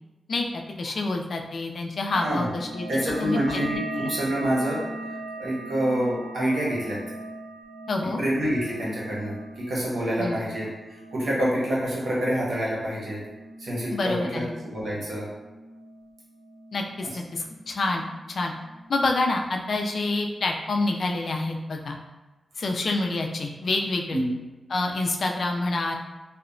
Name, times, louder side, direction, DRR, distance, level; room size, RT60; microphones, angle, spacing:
voice 1, 0.3-2.9 3.2-3.6 4.0-4.1 7.9-8.2 10.2-10.4 13.9-14.5 16.7-18.0 18.3-18.5 18.9-22.0 22.6-24.2 24.7-25.9, left 2 dB, 65° left, 2 dB, 0.3 m, -27 dB
sound 1, 2.1-17.3 17.5-18.3 18.6-19.4 19.7-20.1, right 2 dB, 35° right, 0.8 m, -40 dB
voice 2, 2.1-2.5 2.9-4.8 5.4-7.0 8.2-10.7 11.1-13.2 13.6-15.3 24.1-24.3, equal, 75° right, -6 dB, 0.9 m, -27 dB
2.7 x 2.1 x 2.5 m, 1.1 s
cardioid pair, 80°, 0 cm